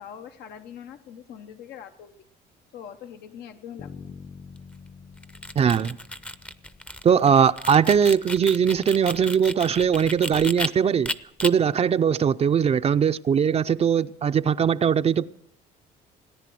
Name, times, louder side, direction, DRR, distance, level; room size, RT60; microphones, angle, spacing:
voice 1, 0.0-2.1 2.7-4.2, left 8 dB, 75° left, 0.9 m, -42 dB
Bass guitar, 3.8-7.7, left 6 dB, 45° left, 0.9 m, -46 dB
sound 1, 5.2-10.7 11.0-11.5, left 1 dB, 5° left, 0.6 m, -33 dB
voice 2, 5.6-6.0 7.0-11.1 11.4-15.3, right 7 dB, 35° right, 0.5 m, -20 dB
18.0 x 10.0 x 7.7 m
cardioid pair, 100°, 17 cm